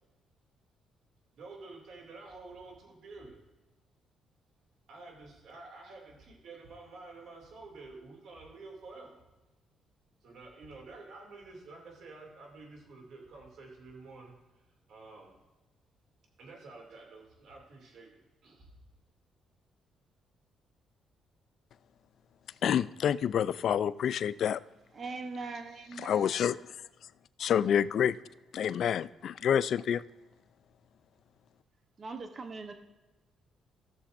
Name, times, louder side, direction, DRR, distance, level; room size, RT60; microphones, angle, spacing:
voice 1, 1.3-3.4 4.9-9.2 10.2-14.6 14.9-15.3 16.4-18.7, right 3 dB, 70° right, 0 dB, 2.4 m, -50 dB
voice 2, 22.6-24.6 26.0-26.6 27.4-28.2 28.5-30.0, left 9 dB, 65° left, 16 dB, 0.3 m, -28 dB
voice 3, 24.9-26.3 32.0-32.7, right 3 dB, 45° right, 6 dB, 0.9 m, -40 dB
16.0 x 6.8 x 2.6 m, 1.1 s
cardioid pair, 90°, 0 cm